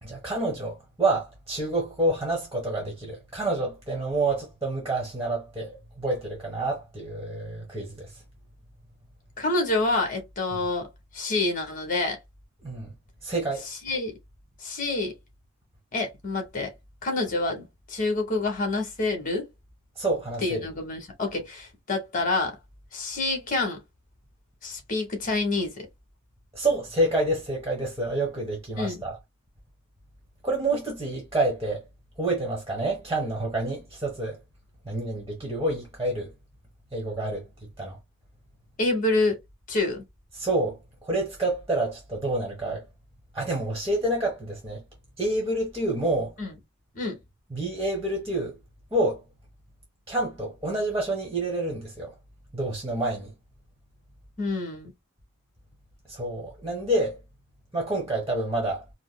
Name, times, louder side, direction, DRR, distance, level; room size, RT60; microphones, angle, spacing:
voice 1, 0.0-8.1 12.6-12.9 13.2-13.7 20.0-20.7 26.5-29.2 30.4-31.8 32.2-34.4 34.8-36.3 36.9-37.5 37.8-38.0 40.4-40.8 41.0-42.9 43.3-44.8 45.2-46.3 47.5-48.6 48.9-49.2 50.1-52.1 52.5-53.3 56.1-57.2 57.7-58.8, right 2 dB, 15° right, 1.2 m, -28 dB
voice 2, 9.4-10.9 11.1-12.2 13.8-14.1 14.6-15.1 15.9-16.7 17.0-19.5 20.4-22.5 22.9-23.8 24.6-25.9 28.8-29.0 38.8-39.4 39.7-40.0 46.4-46.5 46.9-47.2 54.4-54.9, left 2 dB, 40° left, 1.4 m, -27 dB
4.8 x 2.1 x 2.2 m
head